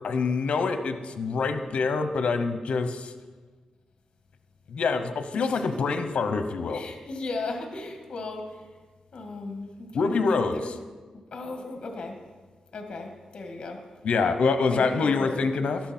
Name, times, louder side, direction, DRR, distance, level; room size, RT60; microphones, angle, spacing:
voice 1, 0.0-3.1 4.7-6.8 9.9-10.7 14.0-15.8, left 4 dB, 75° left, 9 dB, 0.9 m, -25 dB
voice 2, 5.3-5.8 6.6-8.8 9.1-10.7 11.3-12.2 12.7-13.8 14.7-15.5, left 2 dB, 55° left, 4 dB, 1.8 m, -36 dB
12.0 x 11.5 x 4.4 m, 1.4 s
wide cardioid pair, 140°, 2 cm